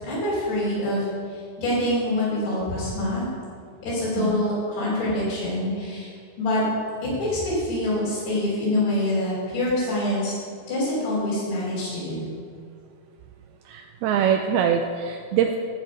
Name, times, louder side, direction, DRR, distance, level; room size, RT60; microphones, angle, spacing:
voice 1, 0.0-3.3 3.8-6.1 6.4-6.6 7.0-10.3 10.7-12.3, left 1 dB, 80° left, -9 dB, 6.6 m, -25 dB
voice 2, 13.7-15.6, right 8 dB, 80° right, 4 dB, 2.3 m, -23 dB
16.0 x 9.4 x 5.6 m, 2.2 s
omnidirectional pair, 5.0 m